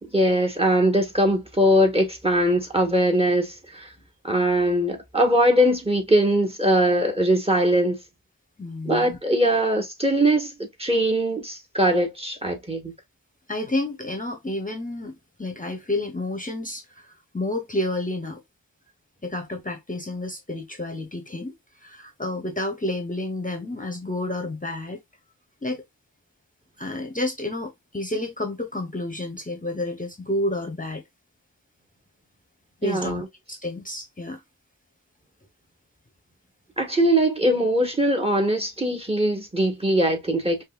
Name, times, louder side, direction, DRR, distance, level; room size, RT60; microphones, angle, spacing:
voice 1, 0.0-3.9 4.2-8.0 8.8-12.9 32.8-33.2 36.8-40.6, right 1 dB, 15° right, 1.6 m, -21 dB
voice 2, 8.6-9.2 13.5-18.4 19.2-21.5 21.8-25.0 25.6-25.8 26.8-31.0 32.8-33.2 33.5-34.4, left 1 dB, 25° left, 1.0 m, -30 dB
5.3 x 2.7 x 2.4 m
wide cardioid pair, 50°, 34 cm